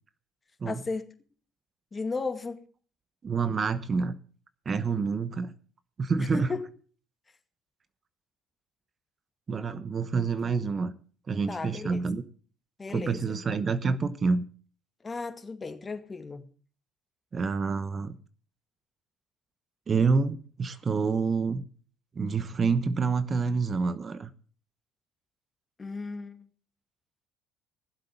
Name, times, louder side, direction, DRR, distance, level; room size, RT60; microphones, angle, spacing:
voice 1, 0.6-1.1 1.9-2.6 6.2-6.7 11.5-12.0 12.8-13.4 15.0-16.4 25.8-26.5, left 4 dB, 25° left, 2.2 m, -35 dB
voice 2, 3.2-4.2 4.6-5.5 6.0-6.5 9.5-10.9 11.3-12.2 12.9-14.4 17.3-18.1 19.9-21.6 22.1-24.3, right 4 dB, 35° right, 1.0 m, -27 dB
16.0 x 7.7 x 6.9 m
supercardioid pair, 75°, 0 cm